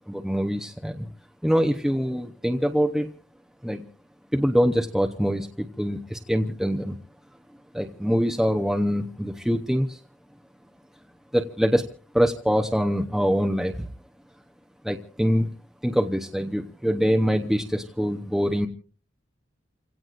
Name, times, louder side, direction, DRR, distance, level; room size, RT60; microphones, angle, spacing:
voice 1, 0.1-1.1 1.4-3.1 3.6-3.8 4.3-7.0 7.7-10.0 11.3-11.9 12.1-13.9 14.8-15.5 15.8-18.7, equal, ahead, 2 dB, 0.8 m, -24 dB
30.0 x 17.0 x 2.5 m, 0.41 s
head